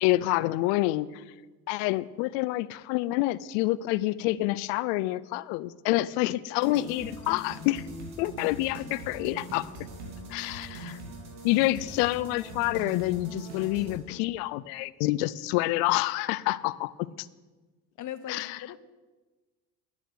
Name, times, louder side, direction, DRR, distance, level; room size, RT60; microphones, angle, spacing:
voice 1, 0.0-1.2 1.7-7.8 8.2-9.7 10.3-11.0 11.4-16.9 17.2-17.3 18.3-18.6, left 17 dB, 90° left, 20 dB, 0.5 m, -27 dB
sound 1, 6.6-13.9, right 1 dB, 90° right, 2.8 m, -42 dB
voice 2, 18.0-18.8, left 10 dB, 50° left, 14 dB, 0.9 m, -39 dB
10.5 x 9.0 x 6.3 m, 1.3 s
supercardioid pair, 80°, 38 cm